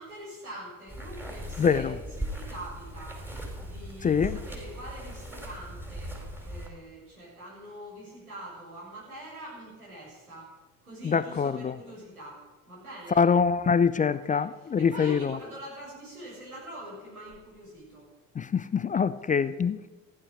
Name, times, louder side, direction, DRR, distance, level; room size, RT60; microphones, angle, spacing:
voice 1, 0.0-1.9 2.2-3.2 3.6-6.1 6.4-10.5 10.8-13.2 14.1-18.0, right 1 dB, 85° right, -5 dB, 6.6 m, -44 dB
sound 1, 0.9-6.7, equal, 5° right, 4.3 m, -39 dB
voice 2, 1.6-1.9 4.0-4.4 11.0-11.7 13.2-15.4 18.4-19.9, left 6 dB, 20° left, 16 dB, 0.5 m, -24 dB
15.0 x 11.0 x 6.5 m, 1.2 s
figure-of-eight pair, 55°, 43 cm